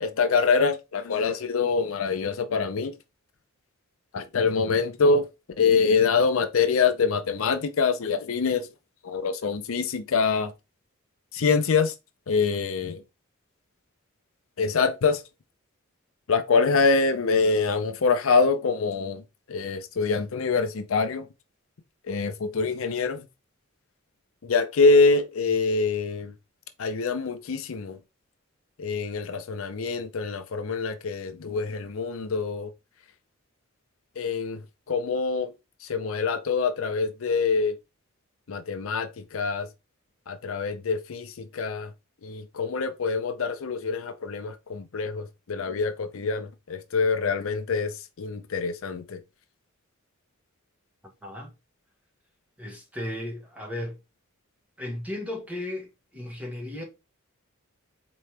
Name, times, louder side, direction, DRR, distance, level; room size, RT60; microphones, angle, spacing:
voice 1, 0.0-2.9 4.1-5.2 5.6-8.7 9.0-10.5 11.3-11.9 12.3-13.0 14.6-15.2 16.3-19.2 19.5-21.2 22.1-23.2 24.5-26.3 26.8-28.0 28.8-32.7 34.2-34.6 34.9-35.5 35.9-37.7 38.5-39.1 39.3-39.7 40.3-41.3 41.5-41.9 42.2-47.9 48.2-49.2, left 4 dB, 70° left, 0.5 m, -25 dB
voice 2, 51.2-51.5 52.6-54.0 54.8-56.8, left 1 dB, 5° right, 1.1 m, -35 dB
4.2 x 3.0 x 3.3 m
head